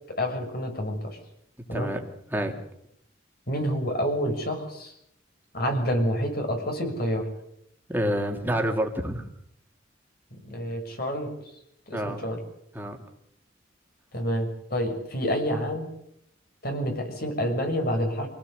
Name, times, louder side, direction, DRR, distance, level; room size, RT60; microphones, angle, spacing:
voice 1, 0.1-1.2 1.7-1.9 3.5-4.9 5.5-7.3 10.4-11.3 11.9-12.4 14.1-15.9 16.6-18.3, equal, 50° left, 4 dB, 6.3 m, -28 dB
voice 2, 1.7-2.0 2.3-2.5 7.9-9.3 11.9-12.3 12.7-13.0, equal, 10° right, 3 dB, 3.0 m, -28 dB
27.0 x 18.0 x 8.2 m, 0.74 s
head